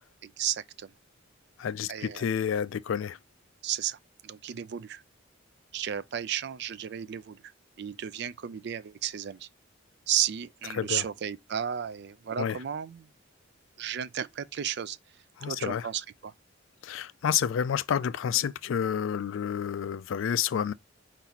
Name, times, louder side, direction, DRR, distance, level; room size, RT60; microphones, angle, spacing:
voice 1, 0.2-0.9 1.9-2.3 3.6-5.0 5.7-7.4 7.8-9.5 10.1-13.1 13.8-15.0 15.4-16.3, right 10 dB, 55° right, 0.4 m, -33 dB
voice 2, 1.6-3.2 10.7-11.0 12.4-12.6 15.4-15.9 16.8-20.7, left 8 dB, 70° left, 0.3 m, -29 dB
4.6 x 4.0 x 2.8 m
head